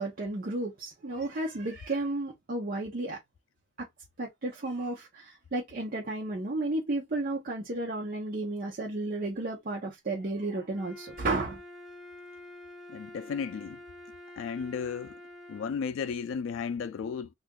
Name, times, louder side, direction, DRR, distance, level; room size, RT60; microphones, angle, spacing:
voice 1, 0.0-3.2 4.2-11.6, right 2 dB, 45° right, 0.7 m, -33 dB
Wind instrument woodwind instrument, 10.7-15.9, left 1 dB, 5° right, 0.7 m, -47 dB
voice 2, 12.9-13.8 14.4-15.2 15.5-17.3, left 6 dB, 70° left, 0.3 m, -34 dB
2.7 x 2.5 x 3.5 m
head